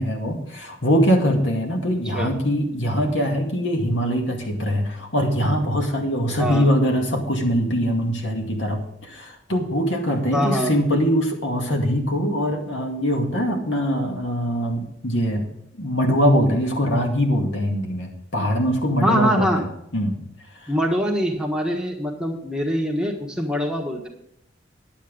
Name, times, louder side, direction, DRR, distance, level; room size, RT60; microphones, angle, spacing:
voice 1, 0.0-15.5 15.8-19.7 19.9-20.2 20.6-20.7, equal, 75° left, 2 dB, 2.2 m, -22 dB
voice 2, 10.3-10.7 19.0-19.6 20.7-24.1, equal, 5° right, 0 dB, 1.4 m, -23 dB
10.5 x 8.4 x 5.2 m, 0.75 s
head